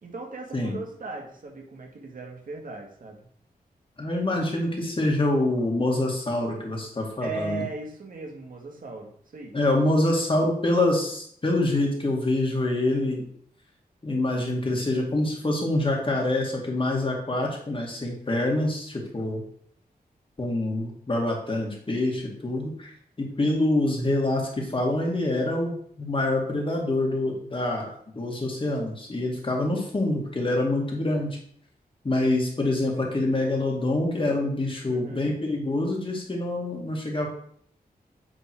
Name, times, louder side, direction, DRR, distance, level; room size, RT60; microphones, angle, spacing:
voice 1, 0.0-3.2 7.2-9.6 34.9-35.3, right 3 dB, 60° right, 0 dB, 1.9 m, -37 dB
voice 2, 4.0-7.6 9.5-13.2 14.0-19.4 20.4-22.9 23.2-31.4 32.0-37.3, left 2 dB, 35° left, 0 dB, 2.1 m, -26 dB
9.2 x 3.8 x 4.6 m, 0.62 s
wide cardioid pair, 90°, 16 cm